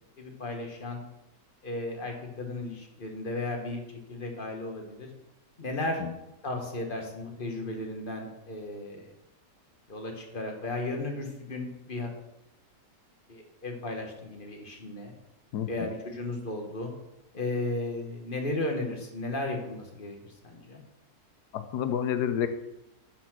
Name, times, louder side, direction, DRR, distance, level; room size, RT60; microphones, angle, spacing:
voice 1, 0.2-1.0 1.6-3.8 4.1-5.1 5.6-6.0 6.4-9.1 9.9-12.1 13.3-15.1 15.7-16.9 17.3-20.8, left 2 dB, 35° left, 2 dB, 1.3 m, -35 dB
voice 2, 21.5-22.5, left 9 dB, 85° left, 10 dB, 1.3 m, -29 dB
10.0 x 4.2 x 6.0 m, 0.90 s
omnidirectional pair, 1.7 m